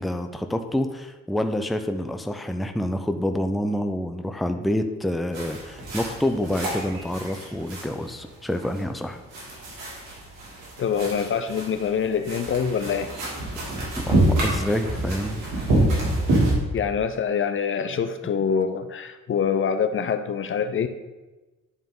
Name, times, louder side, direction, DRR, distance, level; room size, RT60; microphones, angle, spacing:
voice 1, 0.0-9.2 14.0-15.6, left 1 dB, ahead, 7 dB, 0.5 m, -27 dB
sound 1, 5.3-16.5, right 1 dB, 90° right, 2.8 m, -27 dB
voice 2, 10.8-13.1 16.7-20.9, left 7 dB, 40° left, 9 dB, 0.6 m, -25 dB
10.0 x 3.6 x 5.3 m, 1.1 s
cardioid pair, 90°, 30 cm